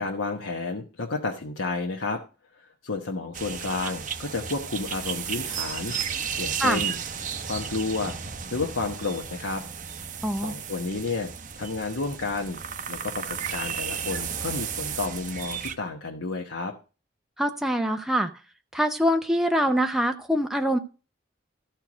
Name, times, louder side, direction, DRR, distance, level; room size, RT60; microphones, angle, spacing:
voice 1, 0.0-2.2 2.5-7.0 7.4-8.1 8.5-9.6 10.3-12.6 12.9-16.7, left 3 dB, 85° left, 0 dB, 1.1 m, -31 dB
sound 1, 3.3-15.7, right 7 dB, 40° right, 0.8 m, -34 dB
voice 2, 10.2-10.5 17.4-18.3 18.7-20.8, equal, ahead, 4 dB, 0.6 m, -24 dB
13.5 x 4.6 x 6.1 m, 0.34 s
head